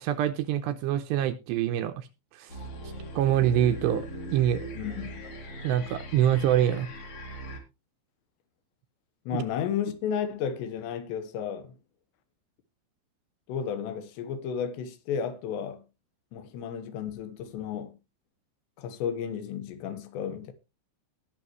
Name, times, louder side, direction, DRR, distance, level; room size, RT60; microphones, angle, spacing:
voice 1, 0.0-2.1 2.3-2.5 3.2-4.1 4.3-4.7 5.6-6.9 9.3-9.4, right 11 dB, 80° right, 2.6 m, -25 dB
sound 1, 2.5-7.6, equal, 45° left, 3.0 m, -40 dB
voice 2, 4.8-5.2 9.3-11.8 13.5-15.8 16.3-18.0 18.8-20.5, left 8 dB, 75° left, 3.3 m, -33 dB
19.0 x 7.0 x 3.1 m
omnidirectional pair, 5.4 m